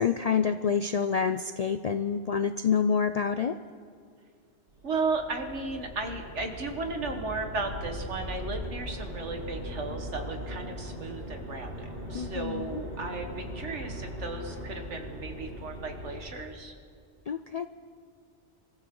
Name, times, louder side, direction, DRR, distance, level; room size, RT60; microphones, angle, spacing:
voice 1, 0.0-3.6 12.1-12.8 17.3-17.7, left 6 dB, 65° left, 10 dB, 0.4 m, -27 dB
sound 1, 4.7-16.2, equal, 40° right, 5.3 m, -39 dB
voice 2, 4.8-16.7, right 3 dB, 85° right, 4 dB, 1.9 m, -35 dB
27.0 x 14.0 x 3.8 m, 2.2 s
omnidirectional pair, 1.2 m